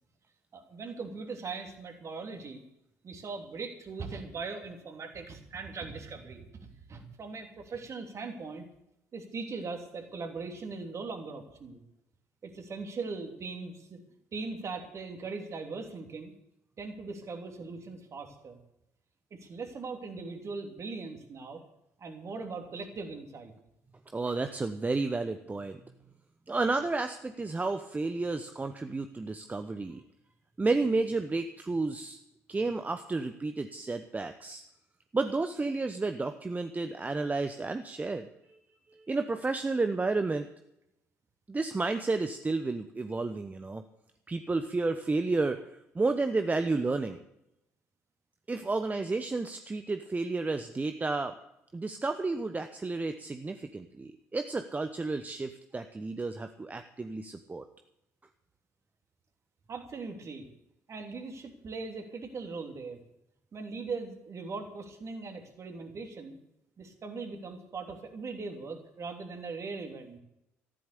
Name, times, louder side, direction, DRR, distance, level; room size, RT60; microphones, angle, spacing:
voice 1, 0.5-2.6 3.0-8.6 9.1-11.8 12.4-14.0 14.3-16.3 16.8-18.6 19.3-21.6 22.0-23.5 59.7-60.5 60.9-63.0 63.5-66.4 66.8-70.2, right 4 dB, 40° right, 4 dB, 3.1 m, -40 dB
voice 2, 24.1-25.8 26.5-30.0 30.6-32.2 32.5-34.6 35.1-38.3 39.1-40.5 41.5-43.8 44.3-45.6 45.9-47.2 48.5-51.3 51.7-57.6, right 3 dB, 20° right, 8 dB, 1.0 m, -31 dB
14.0 x 11.5 x 6.8 m, 0.82 s
figure-of-eight pair, 50°, 7 cm